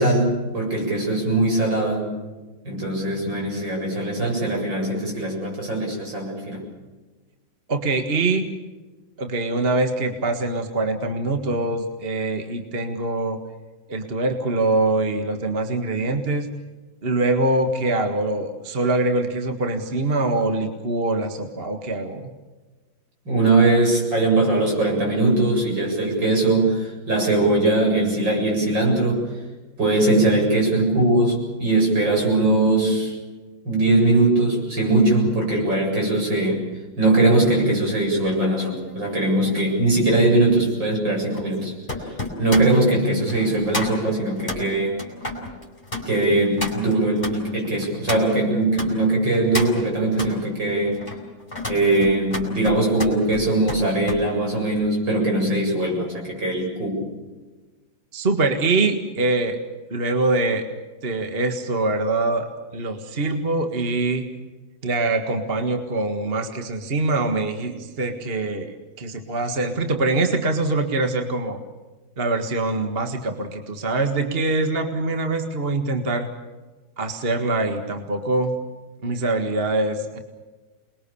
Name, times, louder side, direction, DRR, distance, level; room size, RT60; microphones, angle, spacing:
voice 1, 0.0-2.1 2.6-6.6 23.2-29.2 29.8-33.2 33.6-36.6 37.0-41.7 42.0-45.0 46.1-51.0 51.7-57.1, right 2 dB, 70° right, 0 dB, 8.5 m, -21 dB
voice 2, 7.7-8.5 9.2-13.4 13.9-16.5 17.0-22.3 58.1-59.6 59.9-60.7 61.0-62.5 62.7-64.2 64.8-71.6 72.2-76.3 77.0-78.6 79.0-80.2, right 2 dB, 30° right, 5 dB, 1.9 m, -24 dB
sound 1, 38.3-48.9 49.3-50.4 50.9-54.2 54.6-54.9, left 2 dB, 20° left, 4.8 m, -33 dB
28.0 x 21.5 x 7.0 m, 1.3 s
omnidirectional pair, 2.1 m